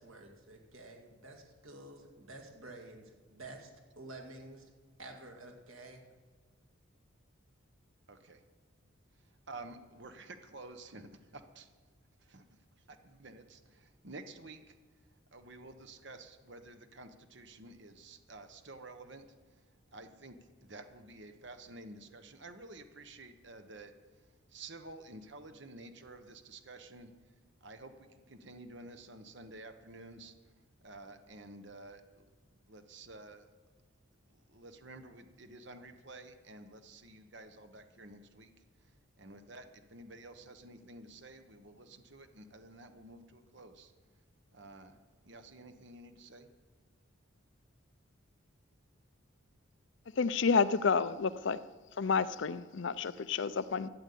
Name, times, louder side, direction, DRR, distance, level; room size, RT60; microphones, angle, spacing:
voice 1, 0.0-4.7 5.0-6.0, right 2 dB, 80° right, 3 dB, 2.2 m, -50 dB
voice 2, 8.1-8.4 9.5-11.7 12.2-12.4 12.9-14.7 15.3-19.6 19.9-23.9 24.2-27.1 27.6-30.5 30.8-32.2 32.7-33.4 34.3-38.5 38.8-43.9 44.5-44.9 45.2-46.5, right 2 dB, 55° right, 8 dB, 1.1 m, -51 dB
voice 3, 50.2-51.6 52.0-53.9, left 5 dB, 60° left, 15 dB, 0.5 m, -30 dB
13.0 x 8.3 x 8.5 m, 1.4 s
head